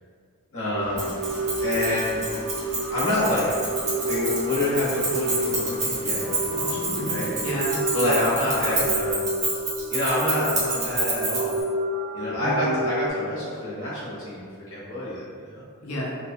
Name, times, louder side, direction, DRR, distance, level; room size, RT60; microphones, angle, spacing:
voice 1, 0.5-1.1 1.6-2.2 2.9-3.7 4.1-6.8 7.0-7.3 7.9-9.3 9.9-11.5 12.1-15.6, left 1 dB, 65° left, -9 dB, 1.1 m, -27 dB
sound 1, 0.7-13.1, right 1 dB, 80° right, 0.4 m, -30 dB
sound 2, 0.8-9.1, left 1 dB, 25° left, 0.4 m, -42 dB
Keys jangling, 1.0-11.6, right 3 dB, 30° right, 0.7 m, -29 dB
voice 2, 6.5-8.8 12.4-12.8 15.8-16.1, equal, 80° left, -4 dB, 0.7 m, -32 dB
2.9 x 2.3 x 2.8 m, 2.1 s
head